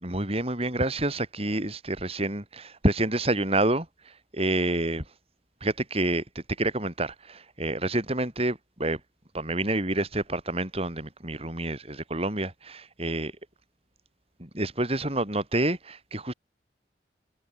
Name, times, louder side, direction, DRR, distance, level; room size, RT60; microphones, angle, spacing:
voice 1, 0.0-3.9 4.3-5.0 5.6-6.2 6.6-9.0 9.3-13.3 14.4-16.3, right 1 dB, 35° right, 7.3 m, -28 dB
head